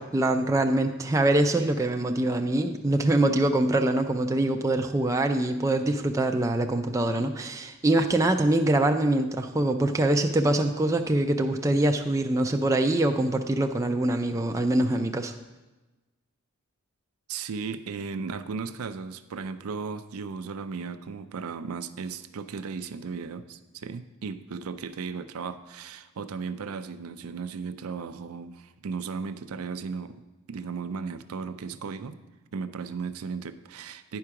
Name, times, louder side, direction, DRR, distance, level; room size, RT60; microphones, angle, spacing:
voice 1, 0.0-15.3, right 1 dB, 15° right, 4 dB, 0.3 m, -24 dB
voice 2, 17.3-30.2 30.5-32.2 32.5-34.2, right 5 dB, 75° right, 11 dB, 0.4 m, -36 dB
9.9 x 4.8 x 5.8 m, 1.1 s
head